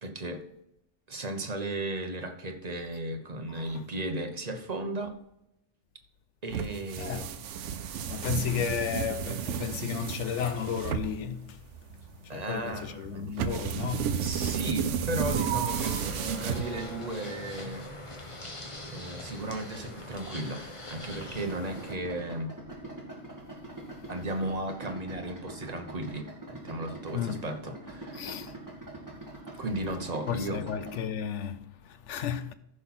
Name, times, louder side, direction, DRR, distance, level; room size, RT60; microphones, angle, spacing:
voice 1, 0.0-0.5 1.1-5.2 6.4-7.3 12.3-13.4 14.2-18.0 18.9-22.5 24.1-28.3 29.6-30.6, right 1 dB, 35° right, 1.2 m, -35 dB
voice 2, 3.5-3.8 7.0-7.3 8.1-11.6 12.2-14.6 27.1-27.4 28.1-28.5 30.3-32.5, left 8 dB, 75° left, 1.0 m, -34 dB
sound 1, 6.5-17.1, right 8 dB, 85° right, 1.0 m, -32 dB
sound 2, 15.7-21.9, left 1 dB, 25° left, 1.3 m, -42 dB
Idling, 21.5-31.0, right 1 dB, 15° right, 2.2 m, -44 dB
14.5 x 5.7 x 4.3 m
omnidirectional pair, 1.2 m